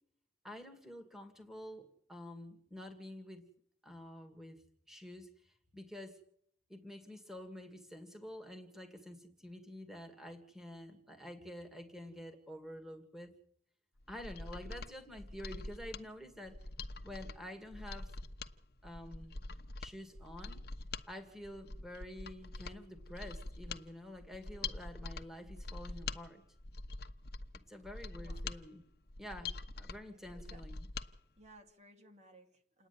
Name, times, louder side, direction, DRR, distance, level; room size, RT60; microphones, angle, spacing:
voice 1, 0.4-3.5 3.8-4.6 4.9-6.2 6.7-13.3 14.1-16.6 17.0-18.1 18.8-19.3 19.8-20.7 21.1-26.4 27.7-28.8 29.2-30.8, left 1 dB, 5° right, 5 dB, 2.2 m, -49 dB
Mechanisms, 14.0-31.1 31.4-31.5, left 3 dB, 60° left, 1.1 m, -45 dB
voice 2, 28.0-28.5 30.2-30.6 31.4-32.9, right 1 dB, 40° right, 4 dB, 2.4 m, -60 dB
28.5 x 10.0 x 9.8 m, 0.66 s
head